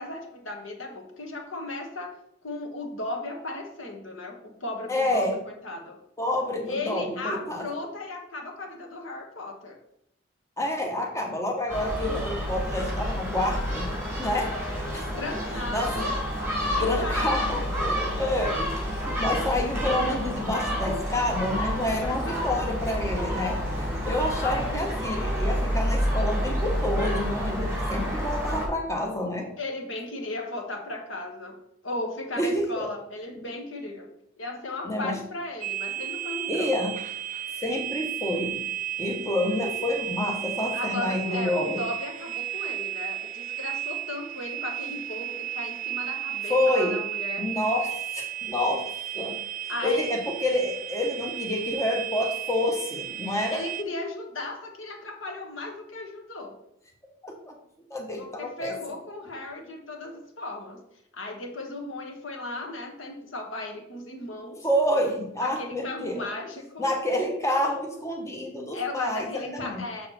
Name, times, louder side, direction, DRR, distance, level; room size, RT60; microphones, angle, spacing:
voice 1, 0.0-2.1 2.4-6.0 6.7-9.8 14.3-14.8 15.2-16.1 16.7-17.5 21.9-22.7 24.4-24.8 29.6-31.6 31.8-34.1 34.4-36.8 40.7-47.5 49.7-50.1 53.5-56.6 58.2-60.8 61.1-64.7 65.4-66.9 68.7-70.1, left 2 dB, 85° left, 3 dB, 1.4 m, -36 dB
voice 2, 4.9-5.4 6.2-7.6 10.6-13.9 14.2-14.5 14.9-15.0 15.7-16.1 16.6-29.5 32.4-32.9 34.8-35.2 36.5-37.0 37.6-38.7 39.0-41.8 46.5-47.0 47.4-49.4 49.8-53.6 57.2-57.5 57.9-58.7 64.6-66.3 66.8-69.8, left 1 dB, 15° left, 1 dB, 1.1 m, -28 dB
Gull seagull, 11.7-28.7, equal, 15° right, 2.4 m, -29 dB
sound 1, 35.6-53.8, right 12 dB, 40° right, 0.3 m, -34 dB
6.7 x 6.5 x 4.2 m, 0.76 s
head